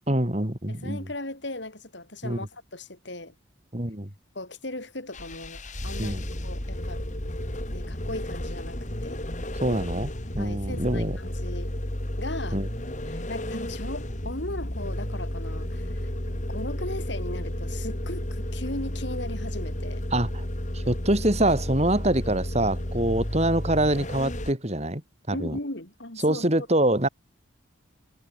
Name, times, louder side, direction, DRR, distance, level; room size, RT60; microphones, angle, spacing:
voice 1, 0.1-1.0 2.2-2.5 3.7-4.1 6.0-6.2 9.6-11.2 12.5-12.7 20.1-20.4 20.7-25.0 25.3-25.6 26.2-27.1, right 1 dB, 30° right, 3.1 m, -25 dB
voice 2, 0.7-3.3 4.3-7.0 7.7-9.2 10.4-11.7 12.2-12.6 13.0-16.1 16.5-20.0 25.3-26.7, left 1 dB, 55° left, 4.1 m, -37 dB
sound 1, 5.1-24.5, left 1 dB, 35° left, 3.1 m, -32 dB
head